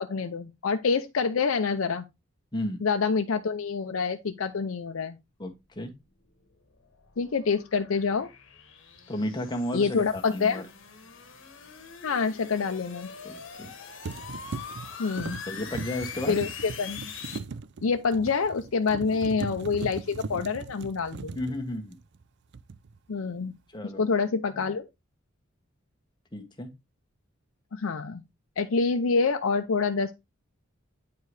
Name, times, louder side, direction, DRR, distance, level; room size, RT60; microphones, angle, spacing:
voice 1, 0.0-2.1 2.8-5.2 7.2-8.3 9.7-10.6 12.0-13.1 15.0-15.4 16.3-17.1 17.8-21.4 23.1-23.5 23.8-24.9 27.7-28.2 28.6-30.1, left 5 dB, 80° left, 0.6 m, -27 dB
voice 2, 5.4-5.9 9.1-10.6 13.2-13.7 15.5-16.4 21.3-22.0 23.7-24.0 26.3-26.7, left 1 dB, 20° left, 1.3 m, -33 dB
sound 1, 6.1-17.4, left 6 dB, 65° left, 1.3 m, -43 dB
sound 2, 10.1-10.2 13.4-13.7 14.0-22.2 22.5-23.0, right 4 dB, 60° right, 0.4 m, -39 dB
9.3 x 4.6 x 3.2 m
head